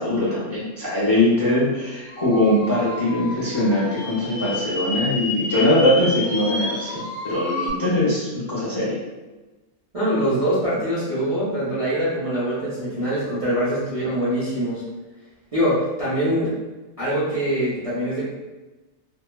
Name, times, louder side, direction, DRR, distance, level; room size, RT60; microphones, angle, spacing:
voice 1, 0.0-9.0, left 1 dB, 25° left, -10 dB, 0.7 m, -21 dB
sound 1, 2.1-7.7, left 2 dB, 65° left, 0.7 m, -30 dB
voice 2, 9.9-14.8 15.5-16.5 17.0-18.3, equal, 35° right, -11 dB, 0.6 m, -23 dB
2.8 x 2.2 x 2.2 m, 1.2 s
omnidirectional pair, 1.5 m